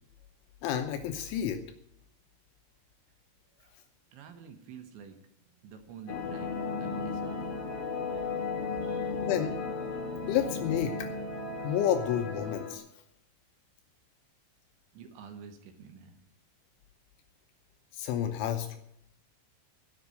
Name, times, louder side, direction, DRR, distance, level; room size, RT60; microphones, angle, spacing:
voice 1, 0.6-1.6 9.2-9.6 10.3-11.1 11.6-12.8 17.9-18.7, left 10 dB, 80° left, 6 dB, 3.2 m, -30 dB
voice 2, 4.1-5.2 5.6-7.7 8.8-9.2 14.9-16.2, right 6 dB, 70° right, 6 dB, 3.5 m, -49 dB
sound 1, 6.1-12.8, left 4 dB, 50° left, 2.8 m, -35 dB
17.0 x 5.9 x 9.4 m, 0.75 s
omnidirectional pair, 5.6 m